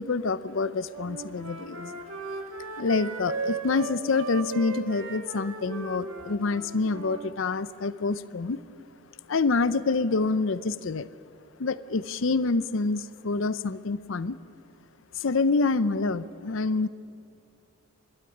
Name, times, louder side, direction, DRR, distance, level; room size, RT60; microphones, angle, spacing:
voice 1, 0.0-1.9 2.8-8.6 9.3-11.1 11.6-14.4 15.1-16.9, left 3 dB, 60° left, 16 dB, 0.6 m, -27 dB
Wind instrument woodwind instrument, 0.9-7.3, right 3 dB, 70° right, 2.3 m, -37 dB
22.5 x 12.5 x 9.8 m, 2.5 s
head